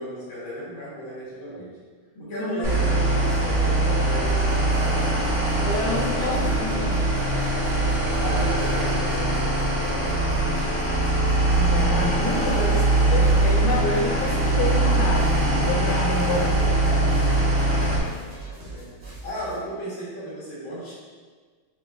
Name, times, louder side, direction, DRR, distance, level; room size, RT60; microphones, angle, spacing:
voice 1, 0.0-1.8 2.2-5.2 5.8-6.9 8.1-10.9 16.2-18.9 19.2-20.9, equal, 70° left, -7 dB, 1.9 m, -35 dB
voice 2, 2.2-2.7 5.6-7.2 11.5-17.2, left 1 dB, 85° left, -2 dB, 1.7 m, -28 dB
sound 1, 2.6-18.0, right 2 dB, 45° right, 1.8 m, -22 dB
sound 2, 4.1-19.6, right 2 dB, 85° right, 0.5 m, -41 dB
6.6 x 2.9 x 2.3 m, 1.5 s
omnidirectional pair, 2.3 m